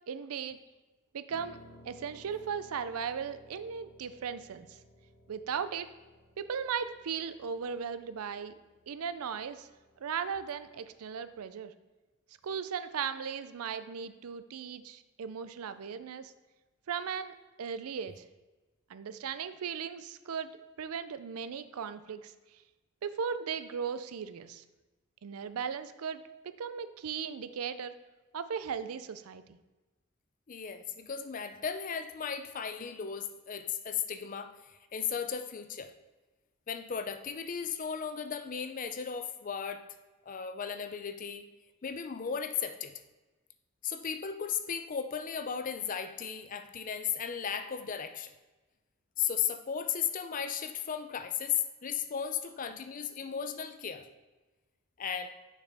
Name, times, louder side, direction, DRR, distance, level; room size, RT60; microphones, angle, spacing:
voice 1, 0.1-0.6 1.1-1.6 1.9-4.8 5.3-5.9 6.4-8.5 8.9-9.7 10.0-11.7 12.4-16.3 16.9-18.2 18.9-20.5 20.8-22.3 23.0-24.6 25.2-27.9 28.3-29.6, right 7 dB, 85° right, 12 dB, 0.4 m, -37 dB
Piano, 1.3-11.4, equal, 65° left, 1.0 m, -59 dB
voice 2, 30.5-35.9 36.7-39.8 40.3-41.5 41.8-42.9 43.8-48.3 49.2-54.1 55.0-55.3, left 7 dB, 40° left, 8 dB, 0.4 m, -35 dB
6.7 x 5.9 x 3.5 m, 1.2 s
head